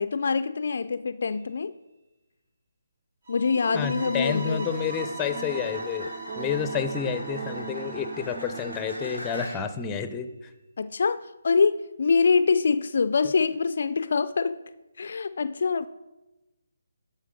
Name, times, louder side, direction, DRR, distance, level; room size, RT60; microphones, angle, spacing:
voice 1, 0.0-1.7 3.3-4.7 10.8-14.6 15.0-15.9, left 5 dB, 55° left, 0.4 m, -24 dB
sound 1, 1.3-1.5 3.8-9.8 13.5-13.7, equal, 85° right, 2.6 m, -41 dB
sound 2, 3.3-8.2, right 2 dB, 55° right, 2.6 m, -41 dB
sound 3, 3.5-9.1, right 9 dB, 30° right, 0.4 m, -41 dB
voice 2, 3.7-6.1 6.4-10.5, left 7 dB, 15° left, 0.7 m, -30 dB
12.5 x 5.7 x 5.3 m
figure-of-eight pair, 145°, 0 cm